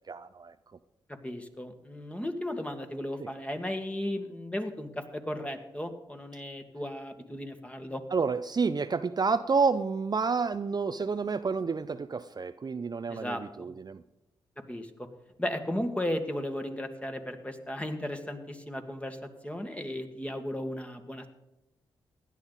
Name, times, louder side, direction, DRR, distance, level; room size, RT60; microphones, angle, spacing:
voice 1, 0.1-0.5 3.2-3.3 8.1-14.0, right 5 dB, 40° right, 11 dB, 0.5 m, -29 dB
voice 2, 1.1-8.0 13.1-13.7 14.7-15.1 15.4-21.3, left 1 dB, 10° left, 6 dB, 1.9 m, -35 dB
16.5 x 10.5 x 4.1 m, 0.91 s
supercardioid pair, 40°, 11 cm